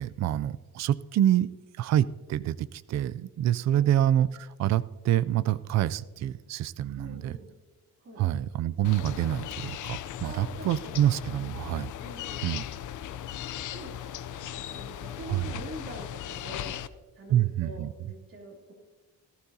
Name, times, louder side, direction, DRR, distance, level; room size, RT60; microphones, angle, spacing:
voice 1, 0.0-1.5 1.8-7.4 8.2-11.9 12.4-12.6 15.3-15.6 17.3-18.1, right 11 dB, 55° right, 15 dB, 0.4 m, -27 dB
voice 2, 7.0-7.5 8.0-8.2 10.2-11.0 12.0-12.5 13.2-13.3 13.7-16.8 17.1-18.7, right 1 dB, 40° right, -1 dB, 3.0 m, -45 dB
sound 1, 8.8-16.9, left 11 dB, 65° left, 0.6 m, -38 dB
18.0 x 14.5 x 2.7 m, 1.2 s
cardioid pair, 145°, 33 cm